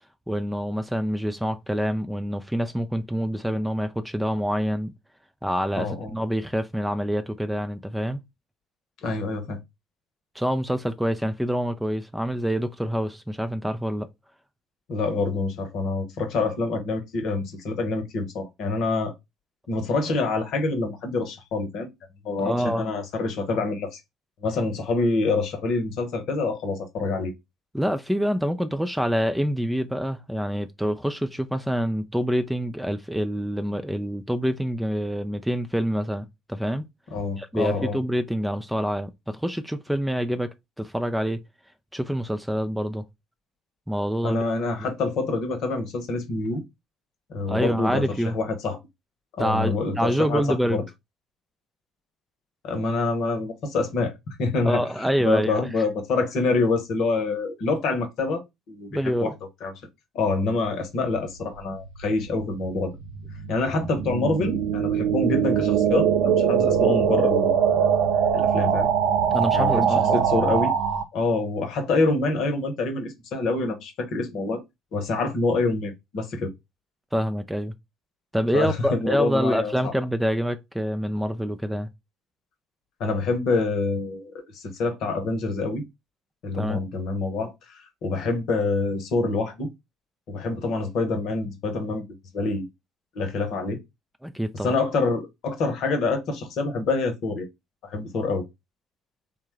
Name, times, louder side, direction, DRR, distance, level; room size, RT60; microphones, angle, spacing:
voice 1, 0.3-4.9 5.4-8.2 10.4-14.1 22.4-22.9 27.7-36.9 37.4-41.4 41.9-43.0 43.9-44.4 47.5-48.4 49.4-50.8 54.6-55.7 58.9-59.3 69.3-70.2 77.1-77.7 78.3-81.9 86.5-86.8 94.2-94.7, equal, 5° right, 0.4 m, -26 dB
voice 2, 5.8-6.1 9.0-9.6 14.9-19.1 19.7-21.9 22.2-24.0 24.4-27.3 37.1-38.0 44.2-46.6 47.3-48.1 48.3-48.8 49.3-50.8 52.6-59.3 59.6-59.7 60.1-62.9 63.5-67.5 68.3-68.9 69.5-70.7 71.1-74.6 74.9-76.5 78.5-79.9 83.0-85.8 86.4-89.7 90.3-92.0 92.3-92.6 93.1-93.8 94.6-97.5 97.8-98.4, left 3 dB, 55° left, 0.9 m, -26 dB
sound 1, 61.7-71.0, right 8 dB, 65° right, 0.4 m, -22 dB
3.7 x 2.2 x 3.1 m
figure-of-eight pair, 55°, 0 cm